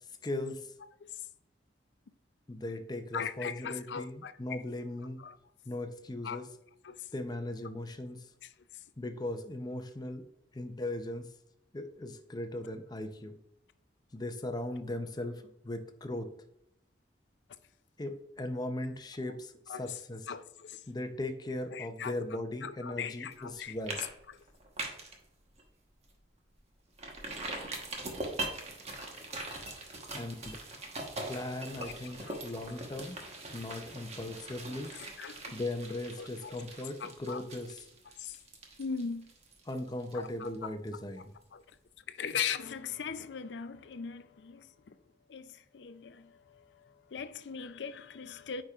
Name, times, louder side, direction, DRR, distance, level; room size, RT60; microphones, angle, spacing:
voice 1, 0.2-0.7 2.5-5.2 5.6-6.5 7.1-8.3 9.0-10.3 10.5-11.3 11.7-13.4 14.1-16.3 18.0-20.3 20.9-24.0 30.1-30.6 31.3-33.2 33.5-34.9 35.5-37.8 39.7-41.3, left 1 dB, 25° left, 0.6 m, -38 dB
voice 2, 3.1-4.6 5.2-5.4 6.2-6.4 6.8-7.1 8.4-8.5 19.7-20.0 20.3-20.8 21.7-23.8 24.3-24.4 31.8-32.4 34.7-35.6 36.2-36.6 37.0-37.4 38.2-38.4 38.8-39.3 40.1-40.7 41.5-41.6 42.1-45.0 45.3-48.6, left 6 dB, 75° left, 0.5 m, -40 dB
sound 1, 23.3-23.5 23.9-24.1 24.4-25.2 25.6-25.7 26.1-26.2 27.0-40.6 40.9-41.0, right 2 dB, 40° right, 1.2 m, -42 dB
8.7 x 5.1 x 2.4 m
head